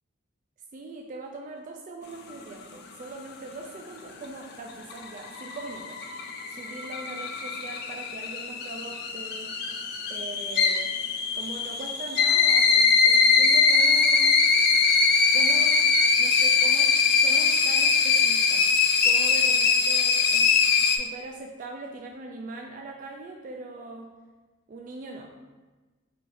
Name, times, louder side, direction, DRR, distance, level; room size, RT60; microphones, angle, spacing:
voice 1, 0.7-6.0 6.5-9.5 10.1-10.9 11.3-14.4 15.3-15.8 16.2-18.7 19.0-20.5 20.9-24.1 24.7-25.3, right 2 dB, 40° right, 1 dB, 0.3 m, -41 dB
sound 1, 4.7-21.0, left 5 dB, 55° left, 0.4 m, -22 dB
4.9 x 2.6 x 3.1 m, 1.3 s
head